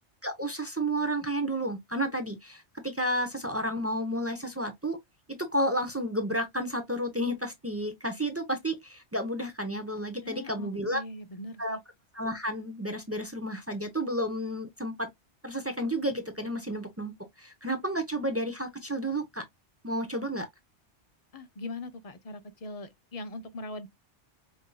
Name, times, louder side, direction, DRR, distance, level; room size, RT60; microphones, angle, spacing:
voice 1, 0.2-5.0 5.3-11.0 11.6-11.8 12.1-15.1 15.4-19.4 19.8-20.5, right 1 dB, 15° right, 0.5 m, -31 dB
voice 2, 10.2-11.8 21.3-23.9, left 2 dB, 40° left, 0.6 m, -41 dB
5.2 x 2.6 x 2.2 m
omnidirectional pair, 1.2 m